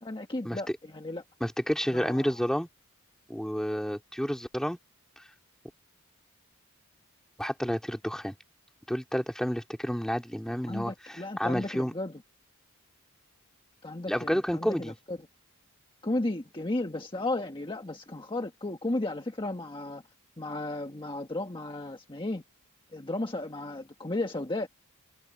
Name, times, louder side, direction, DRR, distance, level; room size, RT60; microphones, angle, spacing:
voice 1, 0.0-1.2 1.9-2.3 10.7-12.2 13.8-15.2 16.0-20.0 20.4-22.4 22.9-24.7, left 2 dB, 20° left, 1.4 m, -34 dB
voice 2, 1.4-2.7 3.3-4.8 5.2-5.3 7.4-8.3 8.9-11.9 14.1-14.9, equal, ahead, 2.6 m, -30 dB
open air
head